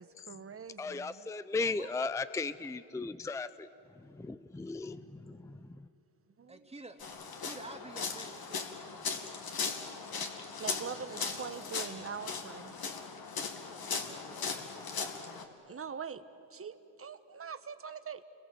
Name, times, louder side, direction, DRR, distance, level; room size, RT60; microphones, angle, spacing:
voice 1, 0.0-1.3 6.4-6.6 10.6-12.7 15.6-16.2 16.5-18.2, right 6 dB, 30° right, 11 dB, 1.3 m, -43 dB
voice 2, 0.8-3.7 4.0-5.8, left 3 dB, 5° left, 14 dB, 0.6 m, -36 dB
voice 3, 1.6-1.9 6.5-7.0 7.4-9.3 9.7-10.2 13.7-14.8, right 2 dB, 15° right, 4 dB, 2.4 m, -51 dB
sound 1, 7.0-15.4, left 5 dB, 50° left, 2.2 m, -38 dB
29.5 x 22.5 x 7.7 m, 2.7 s
cardioid pair, 85°, 46 cm